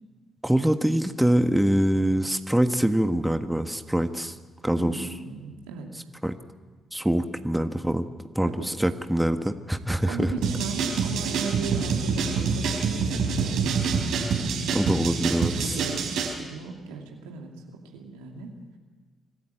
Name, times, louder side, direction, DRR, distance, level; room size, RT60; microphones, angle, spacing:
voice 1, 0.4-4.3 4.6-5.1 6.2-6.4 6.9-8.1 8.3-10.3 14.7-15.7, right 1 dB, 5° right, 8 dB, 1.5 m, -24 dB
voice 2, 4.8-5.9 8.4-8.8 10.1-13.1 13.4-14.0 14.5-15.3 15.6-16.1 16.4-17.5 17.9-18.5, right 5 dB, 90° right, 2 dB, 2.5 m, -36 dB
sound 1, 10.4-16.3, right 5 dB, 75° right, 4.0 m, -26 dB
25.0 x 13.5 x 9.2 m, 1.4 s
hypercardioid pair, 45°, 0 cm